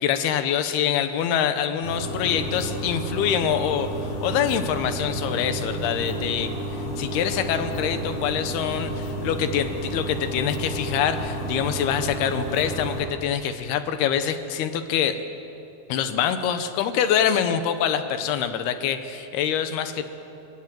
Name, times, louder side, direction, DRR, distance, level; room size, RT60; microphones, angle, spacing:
voice 1, 0.0-3.9 4.2-15.2 15.9-20.1, left 8 dB, 75° left, 9 dB, 2.9 m, -25 dB
sound 1, 1.8-13.0, right 1 dB, 55° left, 8.5 m, -31 dB
29.5 x 18.5 x 7.7 m, 2.9 s
omnidirectional pair, 4.9 m